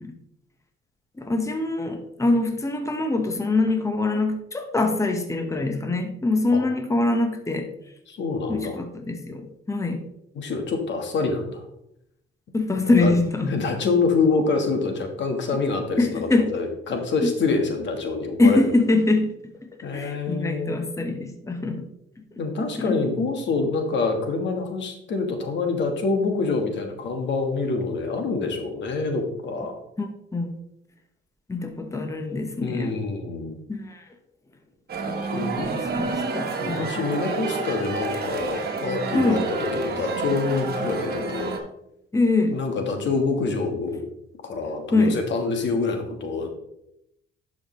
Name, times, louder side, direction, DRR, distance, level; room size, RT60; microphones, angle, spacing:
voice 1, 1.2-7.7 8.5-10.0 12.5-13.5 16.0-16.5 17.2-17.3 18.4-19.3 19.9-21.9 22.8-23.0 30.0-30.5 31.5-33.0 33.7-34.1 35.1-36.9 39.1-39.4 42.1-42.6 44.9-45.2, left 2 dB, 15° left, 5 dB, 1.1 m, -24 dB
voice 2, 8.1-8.8 10.3-11.6 13.0-13.1 13.5-18.7 19.8-20.9 22.4-29.7 32.6-33.6 35.2-35.7 36.6-41.5 42.5-44.0 44.4-46.5, left 4 dB, 65° left, 5 dB, 1.4 m, -26 dB
sound 1, 34.9-41.6, right 3 dB, 50° right, 1.5 m, -29 dB
11.0 x 5.1 x 3.2 m, 0.80 s
cardioid pair, 90°, 20 cm